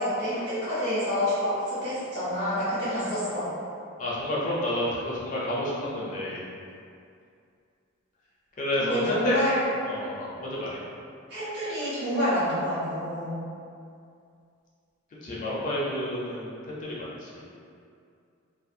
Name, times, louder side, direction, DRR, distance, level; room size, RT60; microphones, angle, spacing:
voice 1, 0.0-3.5 8.8-9.5 11.3-13.4, equal, 50° right, -13 dB, 1.0 m, -28 dB
voice 2, 4.0-6.4 8.6-9.4 9.8-10.8 15.2-17.4, left 1 dB, 40° left, -6 dB, 0.4 m, -30 dB
2.4 x 2.2 x 2.6 m, 2.4 s
head